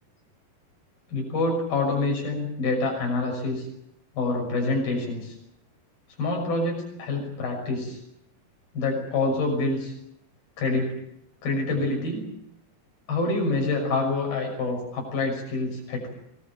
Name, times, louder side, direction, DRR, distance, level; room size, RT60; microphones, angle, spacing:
voice 1, 1.1-3.7 4.2-5.4 6.2-8.0 8.7-9.9 10.6-10.9 11.4-12.2 13.1-16.1, left 3 dB, 90° left, 1 dB, 8.0 m, -26 dB
24.0 x 21.0 x 7.8 m, 0.76 s
omnidirectional pair, 4.1 m